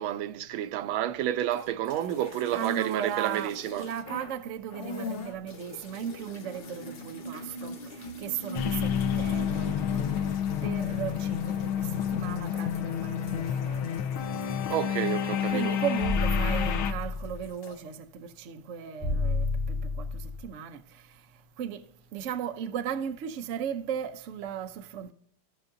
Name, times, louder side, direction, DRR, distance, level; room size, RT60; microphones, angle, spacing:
voice 1, 0.0-3.8 14.7-15.7, right 12 dB, 90° right, 1.4 m, -30 dB
sound 1, 1.4-4.4 4.7-16.6 16.9-17.8, left 1 dB, 50° left, 0.6 m, -44 dB
voice 2, 2.5-10.4 10.6-14.0 15.5-20.8 21.6-21.8 22.1-25.1, right 8 dB, 65° right, 0.7 m, -36 dB
sound 2, 8.5-16.9, left 9 dB, 90° left, 1.7 m, -29 dB
sound 3, 16.0-17.4 19.0-20.4, left 3 dB, 5° right, 2.7 m, -29 dB
16.5 x 5.8 x 2.6 m
omnidirectional pair, 2.2 m